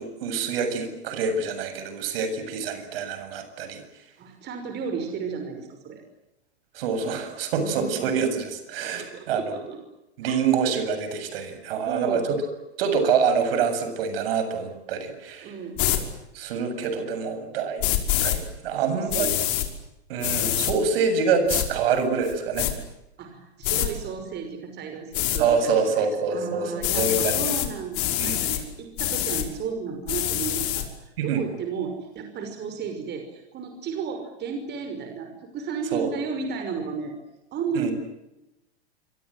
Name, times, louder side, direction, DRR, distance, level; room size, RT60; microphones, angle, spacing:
voice 1, 0.0-3.8 6.7-9.6 10.2-12.2 12.8-15.5 16.3-17.8 18.2-19.3 20.1-22.7 25.3-27.4 28.2-28.4 31.2-31.4 35.9-36.1 37.8-37.9, right 5 dB, 55° right, 9 dB, 7.8 m, -26 dB
voice 2, 4.2-6.0 7.6-8.1 8.9-9.8 10.2-10.4 11.8-12.3 15.4-15.9 18.9-19.5 23.2-37.1 37.5-37.9, right 5 dB, 30° right, 6 dB, 5.7 m, -33 dB
sound 1, 15.8-16.0 17.8-18.4 19.1-19.7 20.2-20.7 21.5-21.7 22.2-22.7 23.6-23.9 25.1-25.4 26.8-27.7 27.9-28.6 29.0-29.5 30.1-30.8, left 13 dB, 50° left, 5.6 m, -25 dB
27.0 x 26.0 x 7.9 m, 0.93 s
hypercardioid pair, 110°, 34 cm